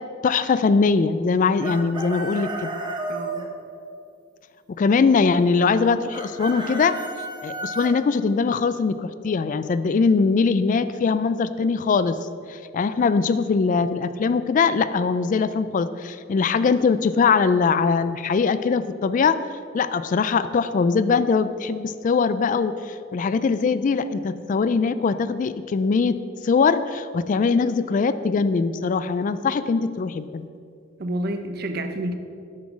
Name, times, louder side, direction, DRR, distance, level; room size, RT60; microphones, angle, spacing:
voice 1, 0.2-2.7 4.7-6.9 7.4-19.4 19.7-26.2 26.4-30.5, left 5 dB, 40° left, 13 dB, 0.3 m, -21 dB
Chicken rooster, 1.6-3.5 6.1-7.9, right 2 dB, 25° right, 0.9 m, -32 dB
voice 2, 3.1-3.4 31.0-32.2, right 1 dB, 55° right, 7 dB, 0.7 m, -29 dB
8.6 x 6.1 x 6.1 m, 2.5 s
head